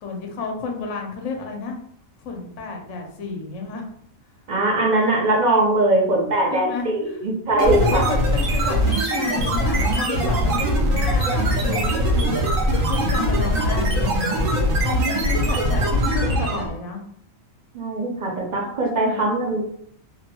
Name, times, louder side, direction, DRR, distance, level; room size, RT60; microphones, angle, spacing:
voice 1, 0.0-1.8 2.2-3.8 5.1-5.2 6.5-6.9 7.5-12.3 12.9-14.1 14.8-17.0 18.6-18.7 18.9-19.3, left 4 dB, 70° left, 2 dB, 1.0 m, -31 dB
voice 2, 4.5-8.0 17.7-19.6, right 2 dB, 50° right, -1 dB, 0.5 m, -21 dB
sound 1, 7.6-16.8, equal, 80° right, 1.1 m, -21 dB
2.8 x 2.2 x 2.8 m, 0.66 s
omnidirectional pair, 1.4 m